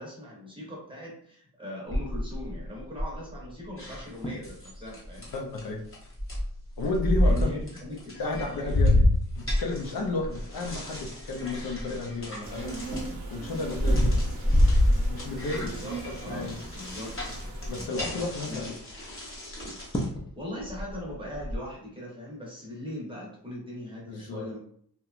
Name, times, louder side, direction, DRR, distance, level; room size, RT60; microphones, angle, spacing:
voice 1, 0.0-5.3 7.2-8.8 15.6-17.2 18.5-18.7 20.4-24.6, left 1 dB, 15° right, -4 dB, 0.8 m, -40 dB
sound 1, 1.9-3.4 3.9-4.0 4.2-4.5 5.0-5.3 6.2-7.6 8.3-12.2 12.7-15.7 16.2-16.5 16.7-16.8 17.1-17.8 19.5-19.6 19.9-20.3 20.6-21.6, left 1 dB, 15° left, 0.3 m, -25 dB
sound 2, 3.8-6.4 6.8-7.0 7.3-20.1, left 1 dB, 35° left, 0.9 m, -42 dB
voice 2, 5.3-5.9 6.8-7.5 8.2-8.9 9.4-12.8 13.3-14.2 15.1-15.7 16.3-16.6 17.7-18.7 24.0-24.4, left 3 dB, 70° left, 1 dB, 0.6 m, -32 dB
sound 3, 12.4-17.9, right 2 dB, 65° right, 0.7 m, -39 dB
2.9 x 2.2 x 2.4 m, 0.62 s
wide cardioid pair, 175°, 37 cm